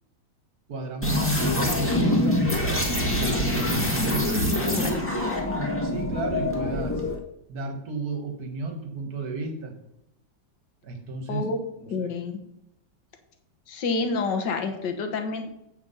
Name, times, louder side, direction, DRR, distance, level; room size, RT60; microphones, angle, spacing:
voice 1, 0.7-5.3 5.8-7.0 7.5-9.7 10.8-11.4 12.0-12.1, right 3 dB, 55° right, 5 dB, 1.9 m, -33 dB
sound 1, 1.0-7.2, left 1 dB, 10° left, 1.2 m, -25 dB
voice 2, 4.3-5.1 11.3-11.6 11.9-12.4 13.7-15.5, left 4 dB, 65° left, 5 dB, 1.8 m, -29 dB
8.2 x 6.0 x 5.5 m, 0.82 s
omnidirectional pair, 2.1 m